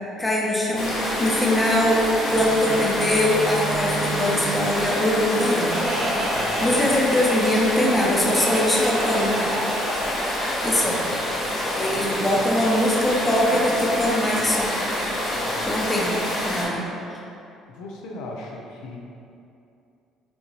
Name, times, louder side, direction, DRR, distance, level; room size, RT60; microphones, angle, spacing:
voice 1, 0.2-5.8 6.1-9.4 10.6-11.0 11.8-14.7 15.6-16.1 16.5-16.8, left 1 dB, 10° left, -4 dB, 0.7 m, -22 dB
sound 1, 0.7-16.6, left 1 dB, 40° left, 1.5 m, -27 dB
sound 2, 1.4-7.8, right 5 dB, 15° right, 0.3 m, -37 dB
Laughter, 5.7-11.4, right 1 dB, 30° right, 0.8 m, -30 dB
voice 2, 6.3-6.8 10.8-11.3 11.6-12.7 15.3-16.0 17.7-19.0, left 2 dB, 80° left, -1 dB, 0.6 m, -40 dB
5.3 x 2.8 x 3.1 m, 2.6 s
cardioid pair, 130°, 0 cm